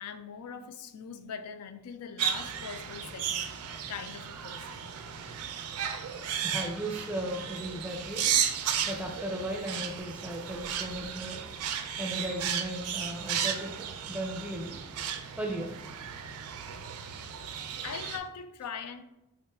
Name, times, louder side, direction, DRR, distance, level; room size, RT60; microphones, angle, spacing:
voice 1, 0.0-3.6 3.9-4.9 17.8-19.0, left 6 dB, 90° left, 0.4 m, -41 dB
sound 1, 2.2-18.2, right 8 dB, 80° right, 0.4 m, -34 dB
voice 2, 6.4-8.3 8.9-11.4 12.0-14.8 15.4-15.7, right 1 dB, 5° right, 0.5 m, -36 dB
4.0 x 3.6 x 2.3 m
head